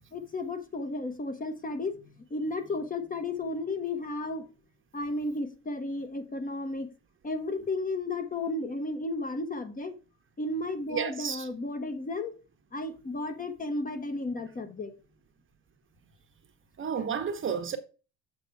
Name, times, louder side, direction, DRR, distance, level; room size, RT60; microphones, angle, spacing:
voice 1, 0.1-2.0 2.3-4.4 4.9-6.9 7.2-9.9 10.4-12.3 12.7-14.9, left 2 dB, 20° left, 1.1 m, -33 dB
voice 2, 10.9-11.5 16.8-17.8, right 7 dB, 30° right, 1.0 m, -31 dB
7.5 x 5.3 x 4.6 m
cardioid pair, 125°, 38 cm